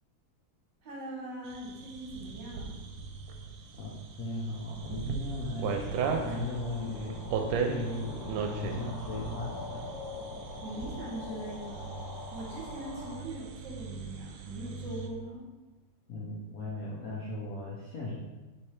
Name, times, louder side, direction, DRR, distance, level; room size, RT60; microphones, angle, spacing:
voice 1, 0.8-2.7 10.6-11.9 12.3-15.4, right 1 dB, 60° right, -4 dB, 1.4 m, -41 dB
sound 1, 1.5-15.1, right 5 dB, 80° right, 1.4 m, -37 dB
voice 2, 4.2-5.8 6.2-9.8 16.1-18.2, left 2 dB, 65° left, -6 dB, 0.9 m, -37 dB
sound 2, 5.9-13.2, left 2 dB, 45° left, 1.7 m, -43 dB
3.5 x 3.2 x 4.3 m, 1.2 s
omnidirectional pair, 2.4 m